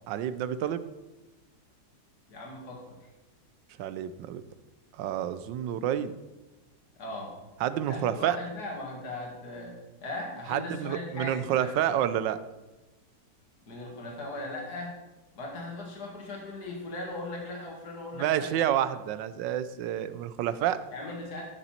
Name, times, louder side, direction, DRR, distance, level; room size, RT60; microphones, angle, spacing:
voice 1, 0.1-0.8 3.8-4.4 5.0-6.1 7.6-8.4 10.5-12.4 18.1-20.8, right 11 dB, 85° right, 13 dB, 1.3 m, -29 dB
voice 2, 2.3-2.9 7.0-7.3 7.9-11.7 13.7-15.0 15.4-18.7 20.9-21.4, left 2 dB, 60° left, -1 dB, 2.5 m, -38 dB
13.0 x 6.9 x 4.3 m, 1.1 s
omnidirectional pair, 1.9 m